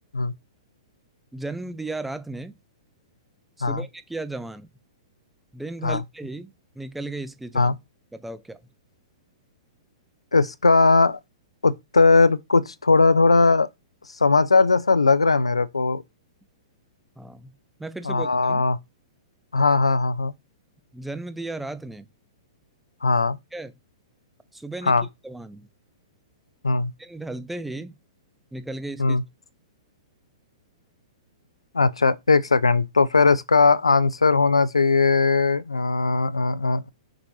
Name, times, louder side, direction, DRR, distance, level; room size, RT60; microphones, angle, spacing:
voice 1, 1.3-2.6 3.6-4.7 5.5-7.8 8.1-8.6 17.2-17.5 17.8-18.7 20.9-22.1 23.5-23.7 24.5-25.7 27.0-28.0 28.5-29.2, right 2 dB, 5° right, 0.4 m, -35 dB
voice 2, 10.3-11.2 11.6-13.7 14.2-16.0 18.1-18.8 19.5-20.3 23.0-23.4 24.9-25.0 26.6-26.9 29.0-29.2 31.7-36.9, left 3 dB, 85° left, 0.4 m, -19 dB
6.0 x 2.6 x 3.2 m
figure-of-eight pair, 110°, 3 cm